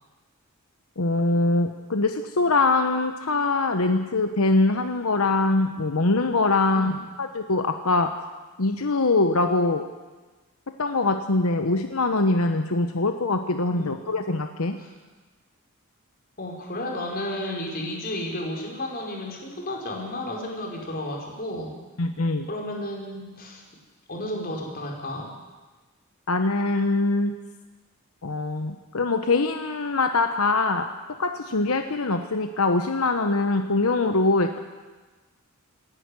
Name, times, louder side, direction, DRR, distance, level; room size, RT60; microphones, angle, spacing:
voice 1, 1.0-6.9 7.2-8.1 8.6-9.9 10.8-14.8 22.0-22.5 26.3-27.3 28.2-30.9 31.2-34.6, left 3 dB, 85° left, 7 dB, 1.1 m, -23 dB
voice 2, 16.4-21.7 22.5-23.6 24.1-25.3, left 1 dB, 45° left, 0 dB, 4.7 m, -32 dB
26.0 x 11.0 x 9.8 m, 1.3 s
head